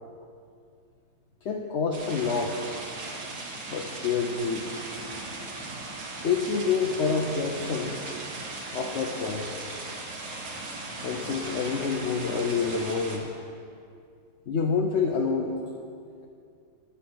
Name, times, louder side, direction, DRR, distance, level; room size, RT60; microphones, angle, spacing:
voice 1, 1.4-2.6 3.7-4.8 6.2-7.9 8.7-9.6 11.0-13.3 14.5-15.6, left 5 dB, 55° left, 0 dB, 0.8 m, -27 dB
sound 1, 1.9-13.2, right 2 dB, 75° right, 2.0 m, -38 dB
9.9 x 8.5 x 6.1 m, 2.4 s
omnidirectional pair, 1.9 m